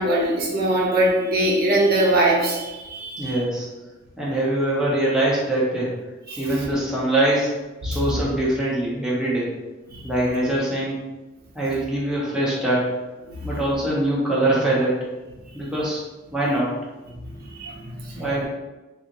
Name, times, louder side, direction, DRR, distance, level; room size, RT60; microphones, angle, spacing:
voice 1, 0.0-3.4 6.3-6.4 7.8-8.2 9.9-10.0 17.4-18.2, right 1 dB, 50° right, -3 dB, 0.7 m, -22 dB
voice 2, 3.2-3.7 4.2-5.9 6.4-7.5 7.8-9.5 10.0-11.0 11.5-12.9 13.4-15.1 15.5-16.0 16.3-16.7 18.1-18.4, right 1 dB, 5° right, -7 dB, 0.7 m, -23 dB
3.5 x 2.5 x 2.9 m, 1.1 s
head